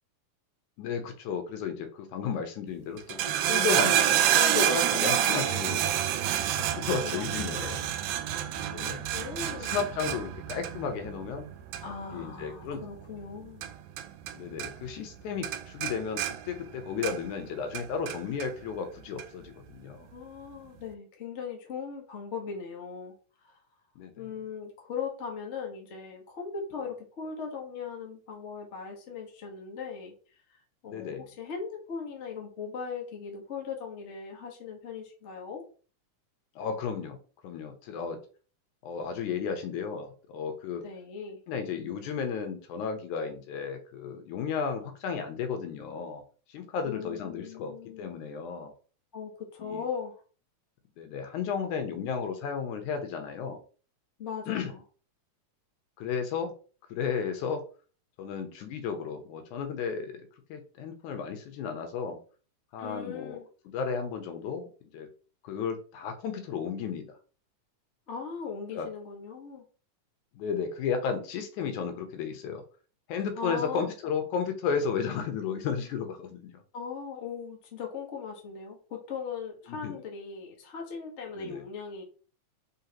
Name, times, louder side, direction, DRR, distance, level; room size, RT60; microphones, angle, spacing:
voice 1, 0.8-5.9 6.6-7.8 8.7-9.1 9.4-11.5 12.1-12.8 14.3-20.1 24.0-24.3 30.9-31.2 36.6-37.2 37.4-38.2 38.8-40.8 41.5-46.2 46.5-48.7 49.6-49.8 51.0-53.6 54.5-54.7 56.0-56.5 56.9-57.6 58.2-62.2 62.7-63.4 63.7-65.1 65.4-67.1 68.7-68.9 70.3-72.6 73.1-76.5 79.7-80.0 81.4-81.6, left 6 dB, 85° left, 6 dB, 2.4 m, -33 dB
sound 1, 3.0-14.3 14.6-15.2 15.4-17.4 17.7-18.5 19.2-19.3, right 11 dB, 85° right, 2.0 m, -28 dB
voice 2, 5.0-5.9 7.1-7.9 9.1-9.8 11.8-13.7 20.1-23.6 24.2-30.1 30.5-35.6 40.8-41.4 46.8-48.2 49.1-50.2 54.2-54.8 62.8-63.5 68.1-69.6 73.3-73.9 76.7-82.0, left 6 dB, 55° left, 1 dB, 0.7 m, -39 dB
5.5 x 3.3 x 2.9 m, 0.37 s
omnidirectional pair, 3.4 m